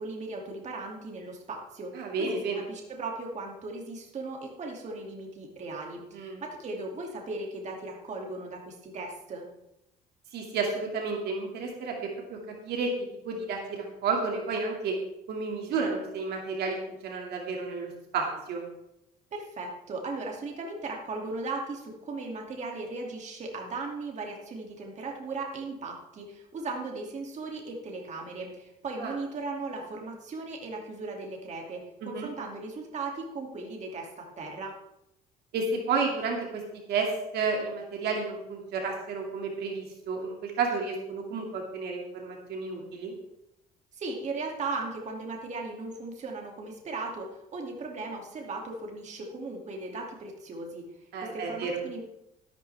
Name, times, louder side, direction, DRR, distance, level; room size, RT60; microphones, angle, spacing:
voice 1, 0.0-2.4 2.7-9.5 19.3-34.7 43.9-47.3 47.5-50.8 51.2-52.0, right 3 dB, 45° right, 0 dB, 2.5 m, -37 dB
voice 2, 1.9-2.6 6.1-6.4 10.3-12.4 12.6-12.9 13.2-15.0 15.3-18.6 29.0-29.2 32.0-32.3 35.5-36.6 36.9-37.1 37.3-43.1 51.1-51.8, right 4 dB, 70° right, 1 dB, 2.3 m, -31 dB
13.0 x 12.0 x 3.5 m, 0.87 s
cardioid pair, 110°, 17 cm